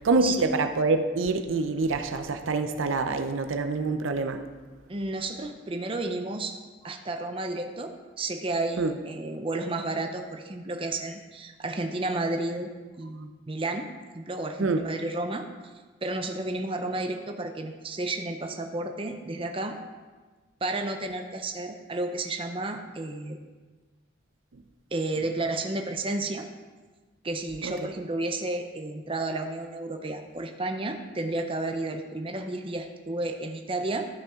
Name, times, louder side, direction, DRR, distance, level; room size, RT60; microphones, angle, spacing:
voice 1, 0.0-4.4 8.8-8.9 14.6-14.8 27.6-27.7, right 3 dB, 85° right, 8 dB, 0.6 m, -26 dB
voice 2, 4.9-6.5 6.8-12.7 13.0-13.9 14.1-15.5 16.0-19.8 20.6-23.4 24.9-26.5 27.2-34.1, right 2 dB, 25° right, 5 dB, 0.6 m, -32 dB
13.0 x 5.8 x 3.6 m, 1.3 s
head